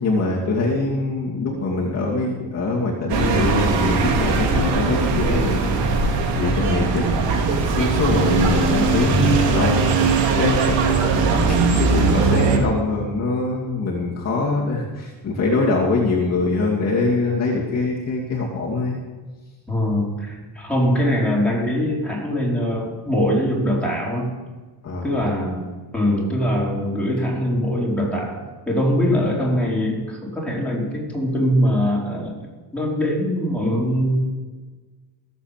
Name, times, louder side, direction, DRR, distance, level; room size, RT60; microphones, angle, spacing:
voice 1, 0.0-9.9 10.4-10.8 11.5-19.0 24.8-25.1, left 3 dB, 35° left, -4 dB, 2.6 m, -23 dB
sound 1, 3.1-12.6, right 4 dB, 80° right, 2.7 m, -19 dB
voice 2, 19.7-24.3 25.0-28.4 28.7-34.2, equal, 5° left, -4 dB, 4.1 m, -22 dB
16.5 x 8.2 x 7.5 m, 1.3 s
cardioid pair, 170°, 43 cm